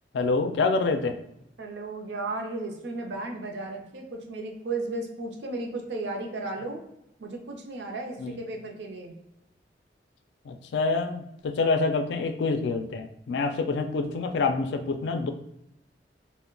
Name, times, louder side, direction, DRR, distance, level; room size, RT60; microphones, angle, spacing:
voice 1, 0.1-1.2 8.2-8.4 10.5-15.3, left 3 dB, 75° left, 7 dB, 0.3 m, -26 dB
voice 2, 1.6-6.8 7.2-9.2, right 2 dB, 75° right, 2 dB, 0.5 m, -34 dB
2.2 x 2.0 x 3.7 m, 0.84 s
head